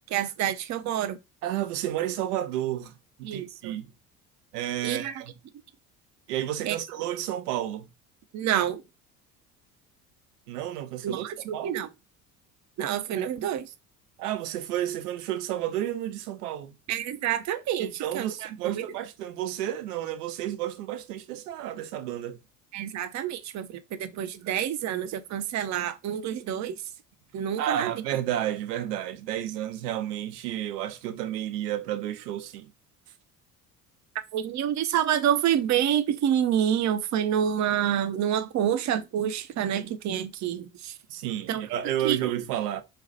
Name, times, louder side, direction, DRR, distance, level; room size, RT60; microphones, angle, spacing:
voice 1, 0.1-1.2 3.2-3.8 4.8-5.1 6.7-6.8 8.3-8.8 11.0-11.9 12.8-13.7 16.9-18.3 18.6-18.8 22.7-26.8 27.3-27.9 34.3-40.9 41.5-41.6 42.0-42.2, right 10 dB, 35° right, 0.7 m, -27 dB
voice 2, 1.4-2.9 3.2-3.9 4.5-5.3 6.3-7.9 10.5-11.2 11.5-11.9 13.2-13.3 14.2-16.7 17.8-22.4 27.6-32.7 41.1-42.8, right 12 dB, 70° right, 0.8 m, -31 dB
4.2 x 2.4 x 4.0 m
figure-of-eight pair, 60°, 48 cm